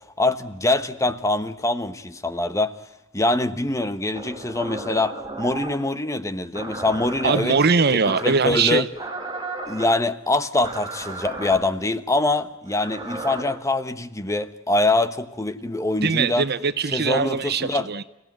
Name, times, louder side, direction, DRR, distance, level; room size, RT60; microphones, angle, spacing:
voice 1, 0.2-2.7 3.1-7.6 7.9-8.8 9.7-16.5 16.9-17.9, left 2 dB, 15° left, 1.2 m, -24 dB
sound 1, 4.1-5.8 6.5-7.4 8.0-8.5 8.9-9.9 10.6-11.6 12.7-13.4, right 2 dB, 20° right, 4.6 m, -34 dB
voice 2, 7.2-8.9 16.0-18.0, right 5 dB, 50° right, 0.9 m, -21 dB
29.5 x 17.0 x 9.3 m
head